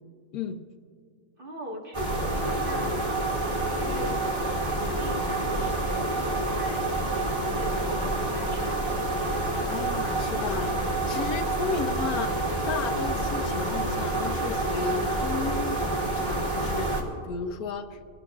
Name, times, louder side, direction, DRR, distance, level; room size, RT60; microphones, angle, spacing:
voice 1, 1.4-2.9 3.2-4.2 4.7-8.8, right 1 dB, 35° right, -1 dB, 1.8 m, -41 dB
sound 1, 1.9-17.0, right 2 dB, 15° right, 2.1 m, -28 dB
voice 2, 9.7-10.8 11.1-12.4 12.7-18.0, left 6 dB, 75° left, 8 dB, 1.2 m, -34 dB
25.0 x 18.0 x 2.4 m, 2.3 s
omnidirectional pair, 1.6 m